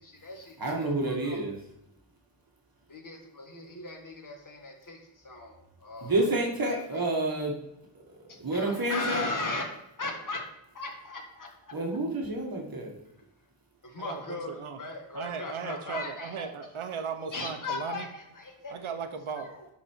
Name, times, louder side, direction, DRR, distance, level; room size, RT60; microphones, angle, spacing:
voice 1, 0.0-0.8 1.0-1.4 2.9-6.3 6.7-7.0 8.3-9.7 10.0-10.4 10.7-11.7 13.8-16.5 17.3-18.8 19.4-19.7, left 3 dB, 40° left, 2 dB, 1.6 m, -38 dB
voice 2, 0.6-1.6 6.0-7.5 8.4-9.3 11.7-13.0, right 2 dB, 45° right, -1 dB, 1.5 m, -29 dB
voice 3, 9.2-9.5 14.0-14.8 15.1-18.1 18.7-19.5, right 6 dB, 85° right, 7 dB, 1.0 m, -37 dB
11.0 x 4.3 x 4.5 m, 0.85 s
wide cardioid pair, 140°, 48 cm